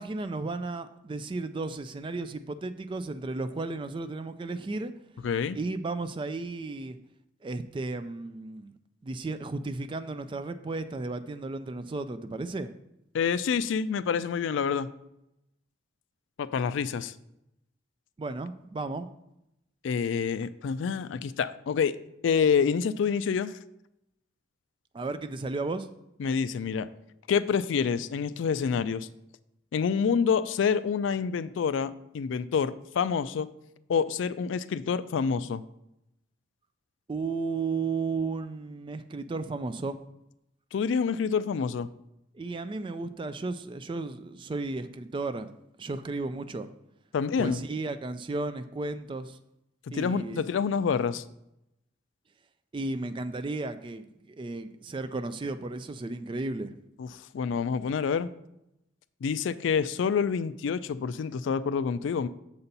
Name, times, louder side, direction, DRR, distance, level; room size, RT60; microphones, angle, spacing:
voice 1, 0.0-4.9 5.5-7.0 7.4-8.7 9.0-12.7 18.2-19.1 24.9-25.9 37.1-40.0 42.3-45.5 45.8-46.7 47.4-49.4 49.9-50.4 52.7-56.8, right 3 dB, 25° right, 11 dB, 0.3 m, -34 dB
voice 2, 5.2-5.6 13.1-14.9 16.4-17.1 19.8-22.0 22.2-23.6 26.2-26.9 27.3-29.1 29.7-33.5 33.9-35.6 40.7-41.9 47.1-47.6 49.9-51.2 57.0-58.3 59.2-62.3, left 6 dB, 70° left, 15 dB, 0.3 m, -27 dB
6.9 x 4.1 x 5.3 m, 0.85 s
head